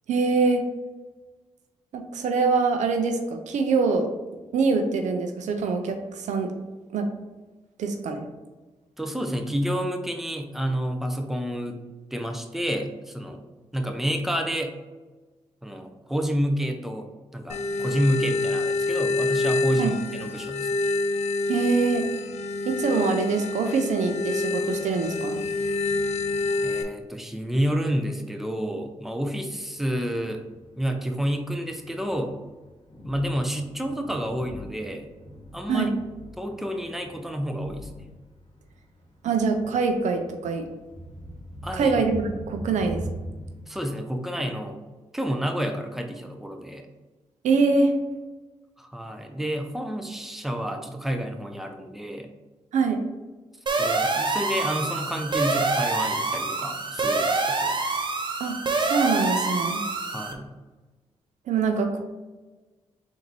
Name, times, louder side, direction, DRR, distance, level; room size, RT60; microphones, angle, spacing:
voice 1, 0.1-0.6 1.9-4.1 4.5-6.5 6.9-7.1 7.8-8.3 19.8-19.9 21.5-22.0 22.7-25.4 35.7-35.9 39.2-40.7 41.7-43.0 47.4-47.9 52.7-53.0 58.4-59.8 61.5-62.0, right 4 dB, 80° right, 5 dB, 0.5 m, -24 dB
voice 2, 9.0-11.8 12.1-13.4 13.7-14.7 15.6-20.8 26.6-30.4 30.8-32.4 33.0-35.1 35.5-35.9 36.4-38.1 41.6-42.0 43.7-44.8 45.1-46.9 48.8-52.3 53.8-57.8 60.1-60.6, equal, ahead, 4 dB, 0.7 m, -29 dB
sound 1, 17.5-26.8, left 3 dB, 65° left, 0.6 m, -27 dB
Thunder, 30.4-43.6, equal, 40° left, 1.4 m, -42 dB
sound 2, 53.7-60.3, right 3 dB, 40° right, 0.7 m, -26 dB
3.9 x 2.7 x 4.5 m, 1.2 s
supercardioid pair, 45°, 12 cm